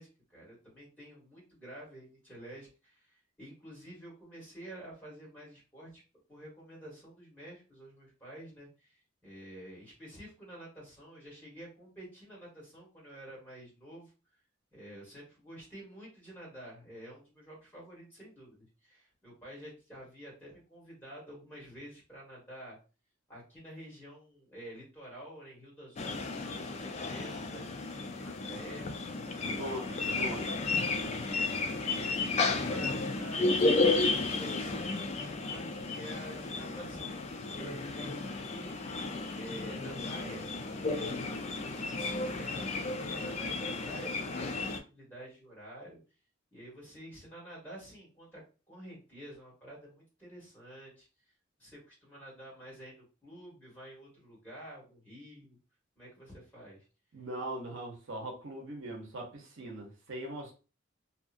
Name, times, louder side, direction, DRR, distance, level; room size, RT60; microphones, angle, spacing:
voice 1, 0.0-6.0 6.3-14.1 14.7-22.8 23.3-28.9 29.6-30.2 31.1-37.2 37.6-46.0 46.5-51.1 51.6-55.6 55.9-56.8, right 1 dB, 10° left, -5 dB, 1.5 m, -49 dB
sound 1, 26.0-44.8, left 3 dB, 35° left, 0.3 m, -33 dB
voice 2, 29.4-30.6 57.1-60.5, right 1 dB, 70° right, 0 dB, 0.8 m, -40 dB
2.8 x 2.4 x 2.4 m, 0.33 s
head